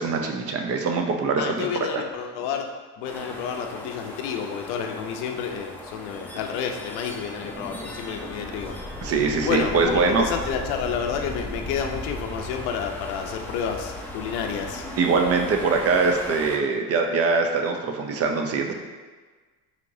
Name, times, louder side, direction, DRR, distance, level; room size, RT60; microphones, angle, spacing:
voice 1, 0.0-1.7 9.0-10.2 15.0-18.7, right 4 dB, 40° right, 3 dB, 0.6 m, -23 dB
voice 2, 1.4-2.7 3.0-8.7 9.4-14.8, left 7 dB, 75° left, 4 dB, 0.6 m, -30 dB
sound 1, 3.0-16.6, left 1 dB, 5° left, 0.5 m, -37 dB
4.2 x 2.8 x 2.6 m, 1.4 s
supercardioid pair, 85°, 36 cm